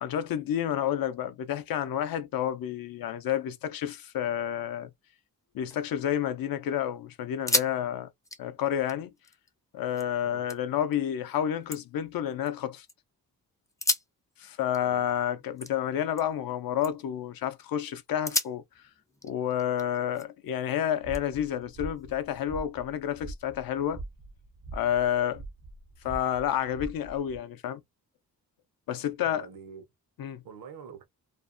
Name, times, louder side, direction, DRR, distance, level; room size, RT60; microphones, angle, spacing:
voice 1, 0.0-4.9 5.5-8.1 8.4-9.1 9.7-12.9 14.4-18.8 19.2-24.0 24.7-25.4 26.0-27.8 28.9-29.5 30.2-30.4, left 10 dB, 80° left, 0.5 m, -30 dB
sound 1, 5.4-6.5 6.8-6.9 7.3-7.8 8.0-10.1 10.5-11.0 11.4-12.9 13.7-16.5 16.8-17.2 17.7-17.8 18.2-20.5 21.1-22.3, left 2 dB, 10° left, 0.4 m, -35 dB
sound 2, 21.0-27.4, right 2 dB, 50° right, 0.6 m, -43 dB
voice 2, 29.2-29.8 30.4-31.1, right 6 dB, 80° right, 0.8 m, -46 dB
2.5 x 2.0 x 2.4 m
wide cardioid pair, 115°, 35 cm